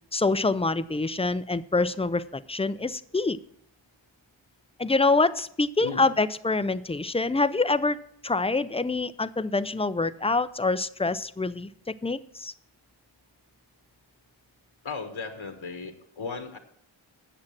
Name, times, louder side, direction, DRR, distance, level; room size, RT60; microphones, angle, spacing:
voice 1, 0.1-3.4 4.8-8.0 8.2-11.7 12.0-12.5, left 3 dB, 15° left, 14 dB, 0.3 m, -25 dB
voice 2, 5.8-6.1 14.8-16.6, left 4 dB, 75° left, 5 dB, 1.4 m, -36 dB
8.9 x 7.2 x 7.3 m, 0.68 s
wide cardioid pair, 75°, 48 cm